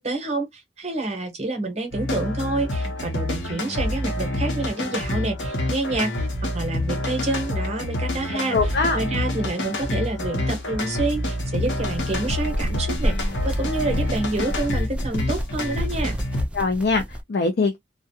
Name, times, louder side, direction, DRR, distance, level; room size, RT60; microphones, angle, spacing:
voice 1, 0.0-6.1 6.5-8.6 8.9-16.2, right 2 dB, 35° right, 0.9 m, -28 dB
sound 1, 1.9-16.4, left 1 dB, 85° left, 0.9 m, -27 dB
voice 2, 8.5-9.0 16.5-17.8, left 3 dB, 60° left, 0.5 m, -22 dB
sound 2, 10.0-17.2, equal, 5° right, 0.3 m, -31 dB
2.3 x 2.2 x 2.7 m
head